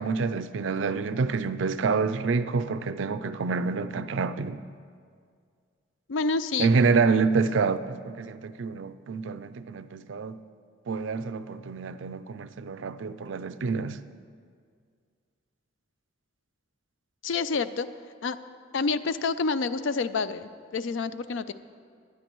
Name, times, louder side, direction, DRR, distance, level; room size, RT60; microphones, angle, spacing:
voice 1, 0.0-4.6 6.6-10.4 10.9-14.0, right 4 dB, 70° right, 0.4 m, -27 dB
voice 2, 6.1-6.7 17.2-17.9 18.2-18.4 18.7-21.5, left 4 dB, 70° left, 0.5 m, -28 dB
19.0 x 11.0 x 3.1 m
head